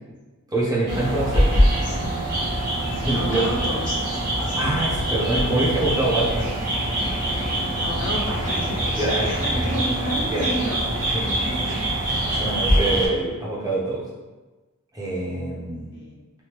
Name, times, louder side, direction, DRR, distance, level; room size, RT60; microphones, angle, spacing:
voice 1, 0.5-1.6 2.9-3.4 4.6-6.5 9.0-9.3 10.3-10.4 12.4-14.0 14.9-15.9, right 2 dB, 15° right, -6 dB, 0.7 m, -25 dB
sound 1, 0.9-13.1, right 1 dB, 35° right, 1.1 m, -24 dB
voice 2, 1.8-2.2 3.1-4.6 7.8-11.9 15.9-16.2, equal, 55° left, -3 dB, 0.6 m, -32 dB
3.4 x 2.1 x 3.0 m, 1.2 s
head